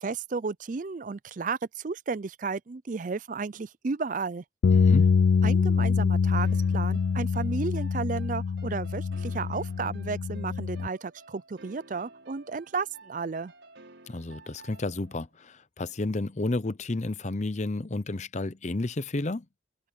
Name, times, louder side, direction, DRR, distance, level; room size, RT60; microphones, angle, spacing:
voice 1, 0.0-4.4 5.4-13.5, right 4 dB, 45° right, 0.5 m, -33 dB
sound 1, 4.6-10.9, left 5 dB, 75° left, 0.4 m, -25 dB
voice 2, 4.7-5.1 14.1-19.5, left 2 dB, 40° left, 0.7 m, -31 dB
sound 2, 6.4-15.3, right 3 dB, 75° right, 6.3 m, -53 dB
head